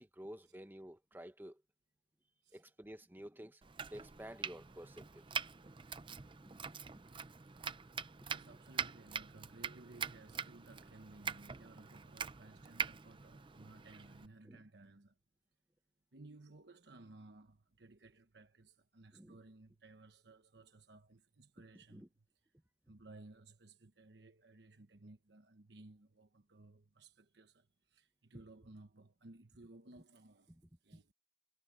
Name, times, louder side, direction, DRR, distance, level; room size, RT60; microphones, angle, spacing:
voice 1, 0.0-1.6 2.5-5.4 6.0-7.1 8.3-8.5 14.4-14.6 19.1-19.4 21.9-22.1 30.5-30.6 30.9-31.1, equal, 10° right, 1.2 m, -53 dB
Domestic sounds home sounds, 3.6-14.3, right 6 dB, 30° right, 0.6 m, -44 dB
voice 2, 8.3-15.2 16.1-22.1 22.9-31.1, right 2 dB, 70° right, 1.2 m, -58 dB
head